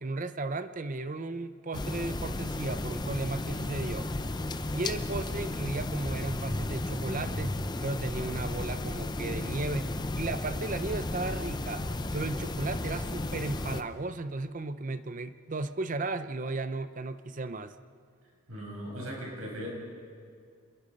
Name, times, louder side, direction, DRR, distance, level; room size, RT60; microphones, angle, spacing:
voice 1, 0.0-4.1 4.7-11.9 12.1-17.8, right 3 dB, 35° right, 12 dB, 0.6 m, -35 dB
sound 1, 1.7-13.8, left 2 dB, 20° left, 0.6 m, -34 dB
voice 2, 18.5-19.7, equal, 75° right, -2 dB, 7.2 m, -38 dB
28.0 x 21.5 x 5.3 m, 2.2 s
head